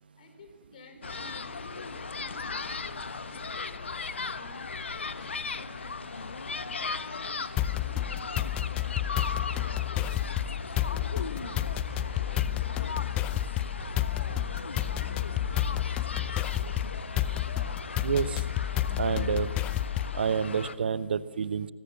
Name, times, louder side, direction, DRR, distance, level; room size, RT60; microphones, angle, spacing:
voice 1, 0.2-2.9 3.2-3.8 4.2-4.6 5.0-8.9 9.2-10.1 10.7-14.0, left 2 dB, 40° left, 6 dB, 4.7 m, -52 dB
sound 1, 1.0-20.7, left 4 dB, 65° left, 1.3 m, -37 dB
sound 2, 2.3-2.4 3.3-3.4 4.2-4.3 5.2-5.3 6.1-6.2 7.1-7.2 7.6-19.4, right 2 dB, 10° right, 5.4 m, -45 dB
sound 3, 7.6-20.2, left 14 dB, 15° left, 0.6 m, -30 dB
voice 2, 18.0-18.4 19.0-19.5 20.1-21.7, right 6 dB, 50° right, 16 dB, 1.0 m, -28 dB
24.5 x 20.5 x 7.1 m, 1.4 s
figure-of-eight pair, 140°, 7 cm